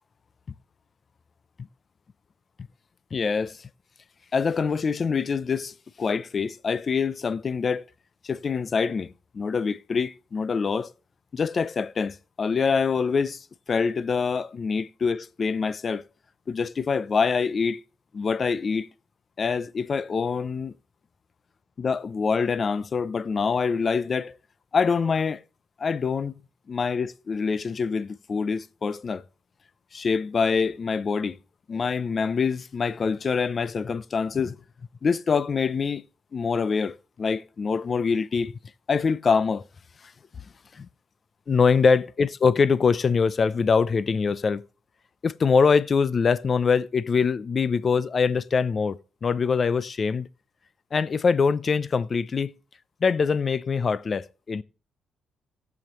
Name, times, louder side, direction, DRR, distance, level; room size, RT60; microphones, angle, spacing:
voice 1, 3.1-3.6 4.3-7.8 8.2-10.9 11.3-16.0 16.5-17.8 18.1-18.9 19.4-20.7 21.8-24.4 24.7-25.4 25.8-26.3 26.7-29.2 29.9-31.4 31.7-34.6 35.0-36.0 36.3-38.5 38.9-39.6 40.7-40.9 41.5-44.6 45.2-50.3 50.9-52.5 53.0-54.6, left 5 dB, 40° left, 0.5 m, -24 dB
17.5 x 7.1 x 3.0 m
cardioid pair, 90°, 0 cm